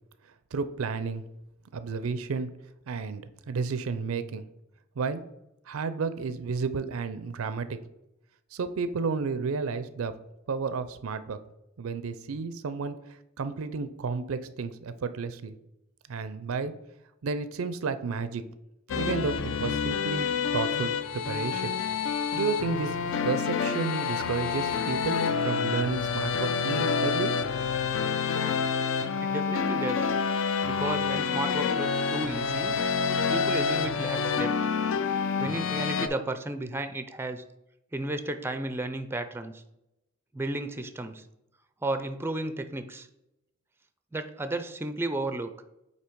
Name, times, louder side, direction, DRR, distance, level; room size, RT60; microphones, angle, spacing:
voice 1, 0.5-1.2 1.7-2.5 2.9-4.4 5.0-5.2 5.7-7.8 8.5-10.1 10.5-11.4 11.8-12.9 13.4-15.5 16.1-16.7 17.2-18.4 18.9-21.7 22.3-25.2 25.4-27.3, right 4 dB, 85° right, 12 dB, 0.5 m, -32 dB
sound 1, 18.9-36.1, left 5 dB, 65° left, 0.4 m, -28 dB
voice 2, 29.2-30.1 30.6-32.8 33.3-34.5 35.4-37.4 37.9-39.6 40.3-41.2 41.8-43.1 44.1-45.5, right 2 dB, 10° right, 9 dB, 0.4 m, -33 dB
8.3 x 2.8 x 4.5 m, 0.89 s
head